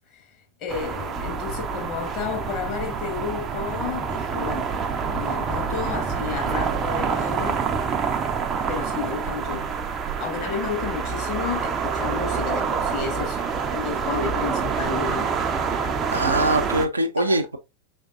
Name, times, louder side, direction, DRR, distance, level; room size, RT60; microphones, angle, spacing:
voice 1, 0.6-4.7 5.1-7.7 8.1-8.3 8.7-9.7 10.2-13.4 13.7-15.4 17.2-17.4, left 6 dB, 40° left, 1.9 m, -32 dB
sound 1, 0.7-16.9, right 6 dB, 25° right, 0.6 m, -27 dB
voice 2, 16.1-17.6, right 1 dB, 80° right, 0.7 m, -22 dB
5.2 x 3.5 x 2.5 m
figure-of-eight pair, 90°, 0 cm